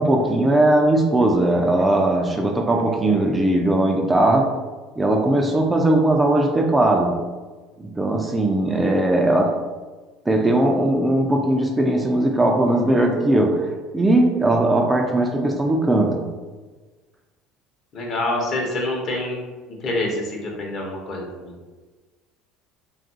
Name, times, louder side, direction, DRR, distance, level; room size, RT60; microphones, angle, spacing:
voice 1, 0.0-4.5 5.0-7.2 7.8-9.6 10.3-16.3, right 1 dB, 15° right, 2 dB, 0.3 m, -19 dB
voice 2, 17.9-19.4 19.7-21.5, left 1 dB, 50° left, -1 dB, 0.8 m, -26 dB
2.8 x 2.4 x 2.6 m, 1.3 s
supercardioid pair, 95°, 0 cm